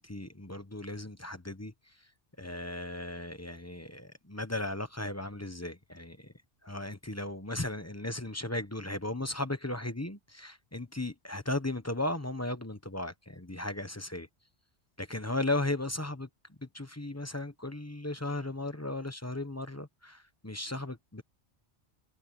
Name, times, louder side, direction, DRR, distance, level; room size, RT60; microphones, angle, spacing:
voice 1, 0.0-2.1 2.4-6.3 6.6-14.3 15.0-21.2, left 2 dB, 15° left, 1.1 m, -36 dB
omnidirectional pair, 1.2 m